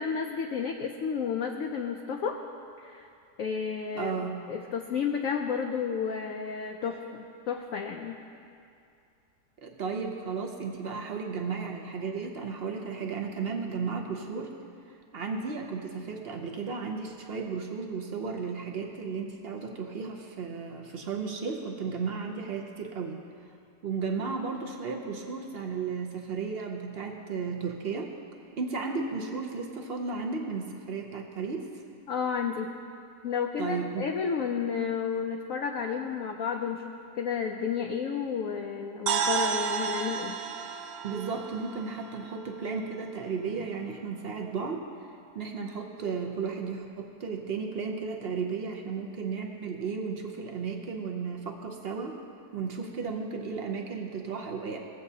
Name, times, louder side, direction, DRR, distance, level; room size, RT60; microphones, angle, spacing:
voice 1, 0.0-2.4 2.8-3.1 3.4-4.2 4.5-8.2 32.1-32.7 33.2-40.4, left 6 dB, 70° left, 2 dB, 0.8 m, -31 dB
voice 2, 3.9-4.4 9.6-14.5 14.9-23.2 23.8-28.1 28.5-31.7 33.6-34.1 41.0-52.2 52.5-54.8, right 5 dB, 60° right, 1 dB, 0.6 m, -34 dB
sound 1, 39.1-43.0, right 7 dB, 75° right, 1.2 m, -32 dB
17.5 x 8.0 x 2.8 m, 2.5 s
omnidirectional pair, 1.9 m